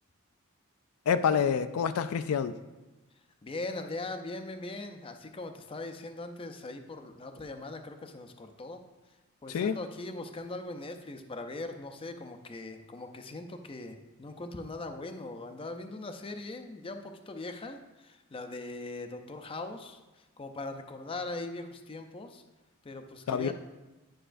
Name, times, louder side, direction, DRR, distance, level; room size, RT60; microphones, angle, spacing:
voice 1, 1.1-2.5 9.5-9.8 23.3-23.5, left 7 dB, 90° left, 11 dB, 0.3 m, -27 dB
voice 2, 3.4-8.8 9.4-22.4 22.8-23.5, left 2 dB, 25° left, 7 dB, 0.5 m, -40 dB
10.0 x 5.4 x 2.5 m, 1.1 s
head